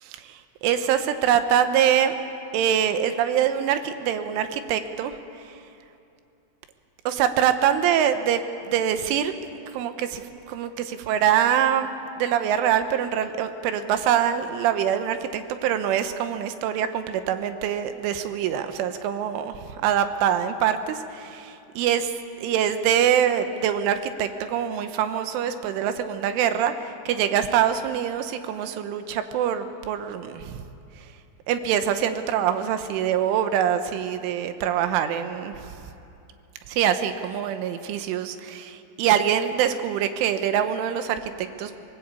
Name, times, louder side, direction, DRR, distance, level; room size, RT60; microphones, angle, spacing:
voice 1, 0.2-2.2 2.5-5.1 7.1-9.3 9.7-11.9 12.2-30.6 31.5-35.8 36.7-41.7, right 9 dB, 85° right, 9 dB, 3.6 m, -24 dB
23.0 x 20.0 x 8.4 m, 2.7 s
omnidirectional pair, 5.5 m